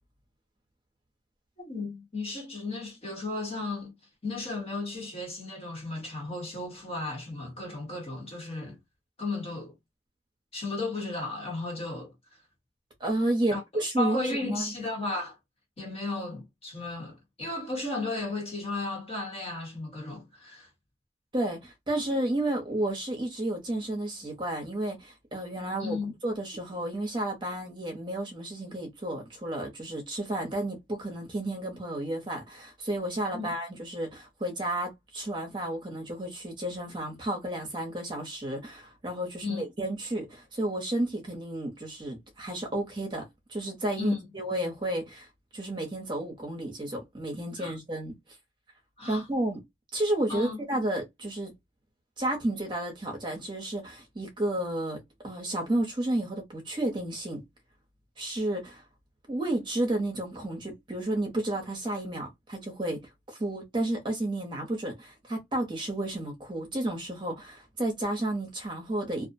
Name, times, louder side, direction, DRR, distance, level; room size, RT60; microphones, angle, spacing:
voice 1, 1.6-3.9 4.2-8.8 9.2-9.7 10.5-12.1 13.5-15.4 15.8-20.7 25.8-26.1 33.3-33.5 39.4-39.6 44.0-44.2 47.6-47.8 49.0-49.3 50.3-50.6, left 2 dB, 30° left, 1.0 m, -34 dB
voice 2, 13.0-14.7 21.3-26.0 26.2-45.3 45.5-48.1 49.1-49.6 49.9-51.5 52.2-57.4 58.2-58.8 59.3-63.1 63.4-69.3, right 1 dB, 25° right, 0.7 m, -32 dB
2.4 x 2.1 x 2.5 m
head